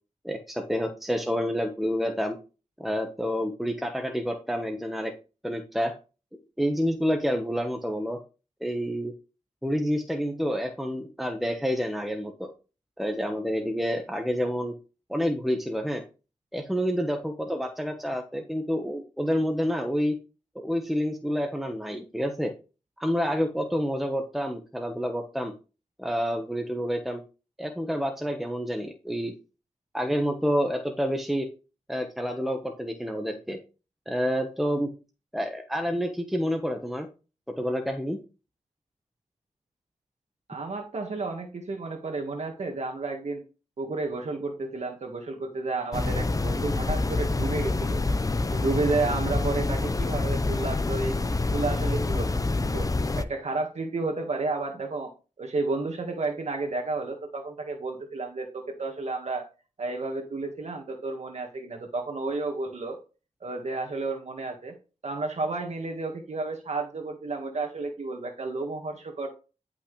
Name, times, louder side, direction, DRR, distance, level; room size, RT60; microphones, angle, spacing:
voice 1, 0.2-2.4 2.8-5.1 5.4-5.9 6.6-8.2 8.6-9.1 9.6-12.5 13.0-14.7 15.1-16.0 16.5-20.1 20.5-22.5 23.0-25.5 26.0-27.2 27.6-29.3 29.9-31.5 31.9-33.6 34.1-34.9 35.3-37.1 37.6-38.2, equal, ahead, 3 dB, 1.2 m, -28 dB
voice 2, 40.5-43.4 43.8-48.0 48.5-51.2 51.4-52.3 52.6-52.9 53.2-55.1 55.4-59.4 59.8-63.0 63.4-64.7 65.0-69.3, right 3 dB, 60° right, 3 dB, 1.6 m, -31 dB
sound 1, 45.9-53.3, left 3 dB, 25° left, 0.7 m, -27 dB
11.0 x 5.9 x 3.3 m, 0.32 s
wide cardioid pair, 75°, 13 cm